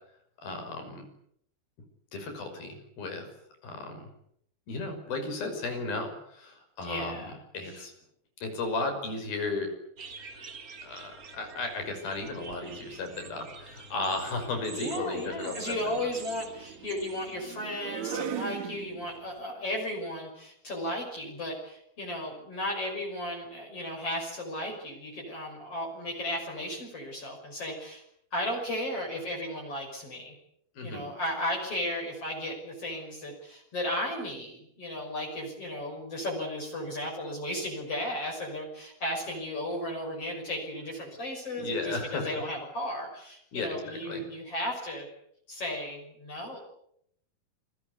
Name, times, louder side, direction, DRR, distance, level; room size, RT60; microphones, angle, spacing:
voice 1, 0.4-1.0 2.1-3.3 3.6-4.1 4.7-7.9 8.4-9.7 10.8-13.5 13.7-15.8 30.8-31.0 41.6-42.3 43.5-44.2, left 3 dB, 70° left, 6 dB, 7.7 m, -34 dB
voice 2, 6.8-7.9 14.7-28.0 28.3-30.4 30.8-45.1 45.5-46.6, left 1 dB, 40° left, -1 dB, 7.1 m, -35 dB
sound 1, 10.0-17.6, right 4 dB, 35° right, 1.6 m, -47 dB
sound 2, 12.3-12.7 14.1-19.4, right 9 dB, 55° right, 2.7 m, -41 dB
29.5 x 22.5 x 8.3 m, 0.71 s
omnidirectional pair, 4.3 m